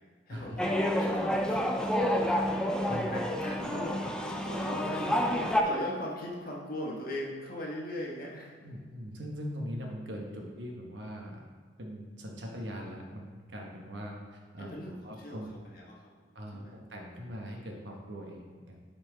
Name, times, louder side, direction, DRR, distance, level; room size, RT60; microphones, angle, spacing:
voice 1, 0.3-8.6 14.6-16.2 16.5-16.8, left 1 dB, 55° left, -2 dB, 1.3 m, -40 dB
sound 1, 0.6-5.6, equal, 5° left, 0.4 m, -29 dB
voice 2, 8.6-11.4 11.8-14.8 15.0-15.5 16.3-18.8, equal, 75° right, 0 dB, 1.2 m, -41 dB
7.8 x 4.4 x 3.8 m, 1.4 s
head